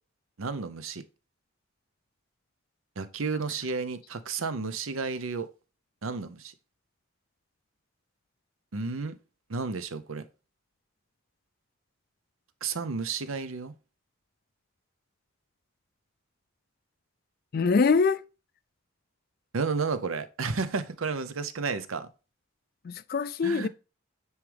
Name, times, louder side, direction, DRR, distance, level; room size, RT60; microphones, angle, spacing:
voice 1, 0.4-1.0 3.0-5.5 6.0-6.5 8.7-9.2 9.5-10.2 12.6-13.7 19.5-22.1 23.4-23.7, right 4 dB, 90° right, 0.7 m, -32 dB
voice 2, 17.5-18.3 22.8-23.7, left 4 dB, 45° left, 0.4 m, -24 dB
9.6 x 4.7 x 3.4 m
head